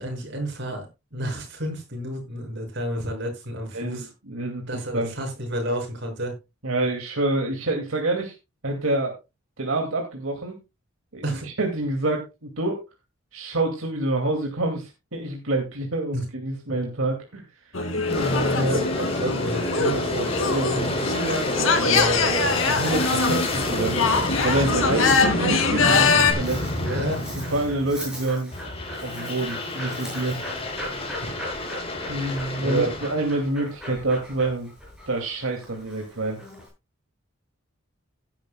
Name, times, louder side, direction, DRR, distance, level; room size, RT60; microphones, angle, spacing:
voice 1, 0.0-4.1 4.7-6.4 11.2-11.5 16.1-16.2 18.6-20.3 20.7-20.8 21.1-22.6 26.8-27.5 31.2-31.4 32.6-32.9, right 1 dB, 55° right, 2 dB, 6.0 m, -30 dB
voice 2, 3.7-5.1 6.6-8.3 8.6-9.2 9.6-10.6 11.1-12.8 13.3-18.7 20.4-21.0 22.7-24.0 24.4-26.7 27.4-28.5 29.0-30.4 32.1-34.7 35.1-36.4, right 2 dB, 85° right, 2 dB, 2.3 m, -27 dB
sound 1, 17.7-26.3, left 4 dB, 75° left, 2.4 m, -23 dB
Aircraft, 18.0-28.0 28.5-33.5, left 2 dB, 30° left, 3.7 m, -29 dB
Dog, 26.1-36.7, equal, 5° right, 7.6 m, -39 dB
17.0 x 10.5 x 2.2 m, 0.25 s
head